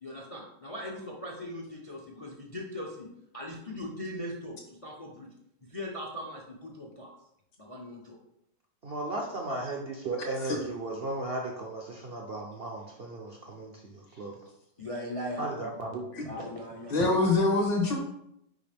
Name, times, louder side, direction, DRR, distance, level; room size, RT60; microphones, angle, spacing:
voice 1, 0.0-5.3 5.7-7.1 7.6-8.2 14.8-15.5 16.2-16.9 17.4-17.5, left 1 dB, 55° left, -1 dB, 0.3 m, -39 dB
voice 2, 8.8-13.7 14.2-14.4 15.4-16.0, right 2 dB, 65° right, 0 dB, 0.5 m, -35 dB
voice 3, 16.9-18.0, left 2 dB, 80° left, 1 dB, 2.0 m, -25 dB
6.1 x 5.0 x 3.4 m, 0.79 s
omnidirectional pair, 1.9 m